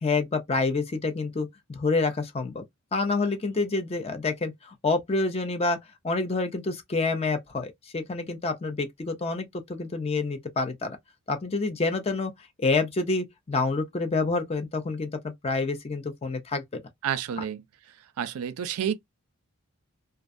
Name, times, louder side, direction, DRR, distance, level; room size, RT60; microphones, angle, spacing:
voice 1, 0.0-2.6 2.9-5.8 6.0-11.0 11.3-12.3 12.6-16.8, left 3 dB, 25° left, 0.4 m, -28 dB
voice 2, 17.0-17.6 18.2-18.9, right 8 dB, 75° right, 0.4 m, -29 dB
2.4 x 2.2 x 2.5 m
head